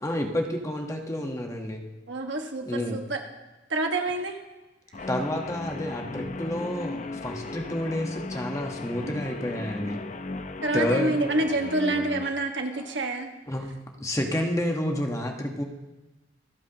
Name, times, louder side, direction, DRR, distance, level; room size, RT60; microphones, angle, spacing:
voice 1, 0.0-1.8 2.7-3.0 5.1-10.0 10.7-11.1 12.7-12.9 13.5-13.7 14.0-15.6, left 1 dB, 15° left, 2 dB, 1.2 m, -29 dB
voice 2, 2.1-3.2 3.7-4.4 5.0-5.1 10.6-13.3 15.0-15.1, right 2 dB, 75° right, 3 dB, 1.5 m, -27 dB
Guitar, 4.9-12.3, left 2 dB, 40° left, 0.6 m, -36 dB
26.5 x 9.2 x 2.9 m, 1.1 s
head